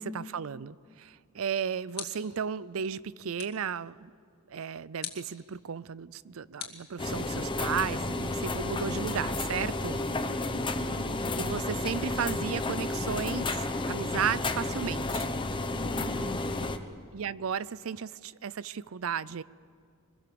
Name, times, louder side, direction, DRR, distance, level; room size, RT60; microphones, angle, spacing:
voice 1, 0.0-4.1 4.5-10.0 11.4-15.3 16.6-16.7 17.1-19.4, right 7 dB, 70° right, 20 dB, 0.5 m, -34 dB
sound 1, 1.3-2.5 3.4-3.7 5.0-5.4 6.6-7.5, left 9 dB, 45° left, 2.2 m, -43 dB
sound 2, 7.0-16.8, left 2 dB, 20° left, 0.9 m, -32 dB
voice 2, 10.0-11.2 15.6-16.3, equal, 15° right, -5 dB, 3.7 m, -40 dB
23.5 x 21.5 x 7.0 m, 2.1 s
head